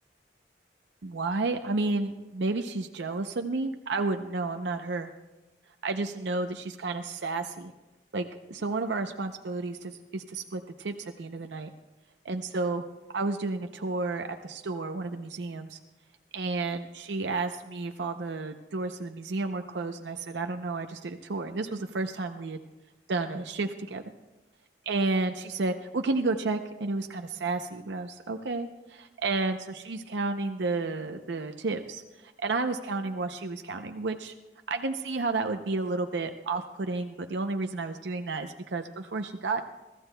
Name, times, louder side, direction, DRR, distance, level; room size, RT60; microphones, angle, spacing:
voice 1, 1.0-5.1 5.8-7.7 8.1-11.7 12.3-12.8 13.1-15.8 16.3-22.6 23.1-24.0 24.9-34.3 34.7-39.6, right 3 dB, 80° right, 6 dB, 0.6 m, -31 dB
23.0 x 14.5 x 2.2 m, 1.1 s
head